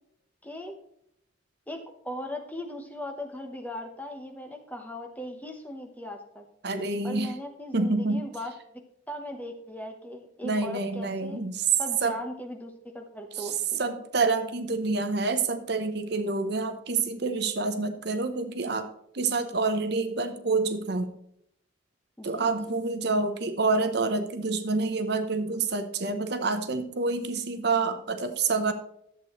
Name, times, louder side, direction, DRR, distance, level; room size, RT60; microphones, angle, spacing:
voice 1, 0.4-0.8 1.7-6.5 7.0-8.6 9.1-11.4 11.8-14.0 22.2-22.5 22.8-22.9, left 1 dB, 10° left, 4 dB, 1.0 m, -38 dB
voice 2, 6.6-7.3 7.7-8.2 10.4-11.7 12.0-12.1 13.4-13.5 13.8-18.9 19.1-21.1 22.2-28.7, right 3 dB, 55° right, 8 dB, 0.8 m, -27 dB
11.5 x 7.9 x 3.1 m, 0.74 s
head